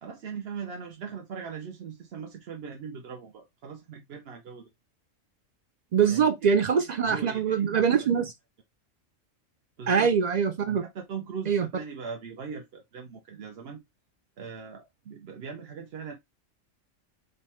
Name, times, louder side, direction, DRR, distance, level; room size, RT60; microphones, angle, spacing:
voice 1, 0.0-4.7 6.1-6.3 6.8-6.9 7.1-8.1 9.8-10.1 10.8-13.8 14.4-16.1, right 6 dB, 55° right, 0.9 m, -40 dB
voice 2, 5.9-8.3 9.9-10.8 11.5-11.7, right 6 dB, 85° right, 0.3 m, -23 dB
5.2 x 2.1 x 4.3 m
omnidirectional pair, 1.3 m